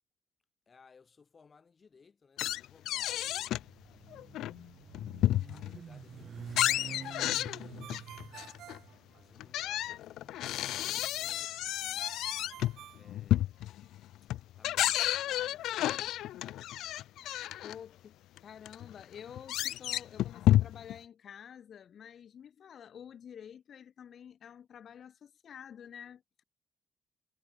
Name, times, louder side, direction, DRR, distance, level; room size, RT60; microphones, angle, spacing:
voice 1, 0.7-3.4 3.9-4.7 5.5-8.7 9.1-12.2 12.9-13.5 14.6-15.8, left 5 dB, 40° left, 5.9 m, -62 dB
sound 1, 2.4-3.7 4.1-5.8 6.2-8.8 9.4-17.7 18.4-18.5 18.7-21.0, left 14 dB, 85° left, 0.3 m, -31 dB
Motorcycle, 3.2-11.4, right 7 dB, 50° right, 1.9 m, -49 dB
Ringtone, 7.8-9.7 12.0-13.9, right 12 dB, 80° right, 4.9 m, -52 dB
voice 2, 17.6-26.4, left 8 dB, 60° left, 5.1 m, -50 dB
cardioid pair, 90°, 0 cm